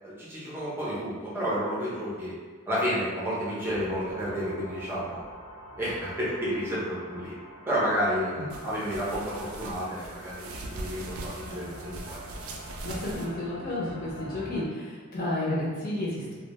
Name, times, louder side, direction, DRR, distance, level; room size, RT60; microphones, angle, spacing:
voice 1, 0.0-2.3 2.7-5.2 5.8-7.4 7.7-12.2, equal, 10° right, -9 dB, 0.5 m, -31 dB
sound 1, 3.6-14.6, equal, 85° left, 0.6 m, -46 dB
sound 2, 8.5-13.3, right 2 dB, 80° right, 0.3 m, -41 dB
voice 2, 11.4-12.1 12.8-16.3, left 1 dB, 40° left, -6 dB, 0.6 m, -32 dB
2.1 x 2.0 x 2.9 m, 1.5 s
head